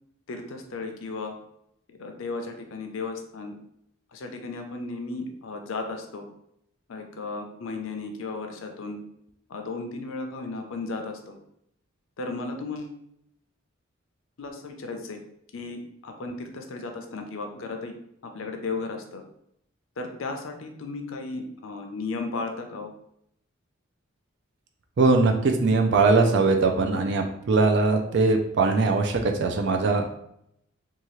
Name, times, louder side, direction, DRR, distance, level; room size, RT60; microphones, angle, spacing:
voice 1, 0.3-1.3 2.0-3.6 4.1-6.2 6.9-9.0 9.5-11.4 12.2-13.0 14.4-15.2 15.5-17.9 18.2-19.2 20.0-22.9, left 3 dB, 70° left, 4 dB, 0.5 m, -35 dB
voice 2, 25.0-30.1, right 3 dB, 55° right, 4 dB, 0.4 m, -21 dB
2.8 x 2.3 x 3.0 m, 0.75 s
head